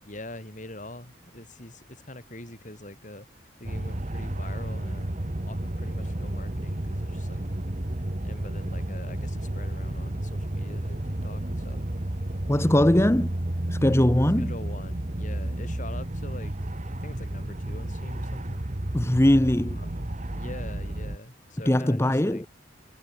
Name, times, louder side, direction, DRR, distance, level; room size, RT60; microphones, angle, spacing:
voice 1, 0.0-7.4 8.2-12.1 12.5-13.0 14.4-16.7 17.0-18.6 19.7-22.4, left 1 dB, 40° left, 6.5 m, -44 dB
sound 1, 3.6-21.2, right 1 dB, 40° right, 1.5 m, -32 dB
voice 2, 12.5-13.3 13.7-14.5 18.9-19.8 21.7-22.5, left 1 dB, 15° left, 0.8 m, -21 dB
head